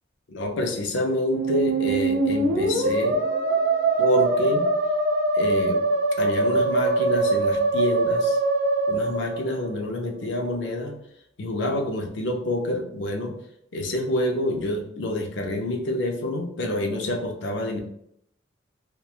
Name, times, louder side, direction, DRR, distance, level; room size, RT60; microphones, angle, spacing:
voice 1, 0.3-3.2 4.0-4.7 5.4-5.8 6.2-8.4 8.9-10.9 11.4-13.3 13.7-17.8, left 1 dB, 70° left, 2 dB, 0.5 m, -27 dB
Musical instrument, 1.2-10.0, right 2 dB, 55° right, 0.4 m, -23 dB
2.8 x 2.2 x 2.3 m, 0.72 s
head